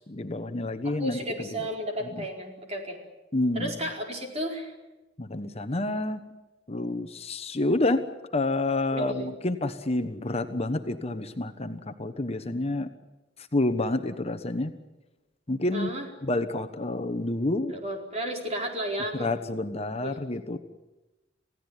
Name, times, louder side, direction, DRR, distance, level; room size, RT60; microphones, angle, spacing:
voice 1, 0.1-1.6 2.1-2.2 3.3-3.7 5.2-6.2 6.7-8.0 8.3-12.9 13.4-14.7 15.5-15.9 16.2-17.7 19.1-20.6, left 2 dB, 35° left, 8 dB, 1.1 m, -29 dB
voice 2, 0.8-3.0 3.5-4.7 8.9-9.3 15.7-16.1 17.7-19.3 20.0-20.2 20.5-20.6, equal, 35° right, 2 dB, 4.6 m, -33 dB
28.0 x 16.5 x 9.8 m, 1.1 s
head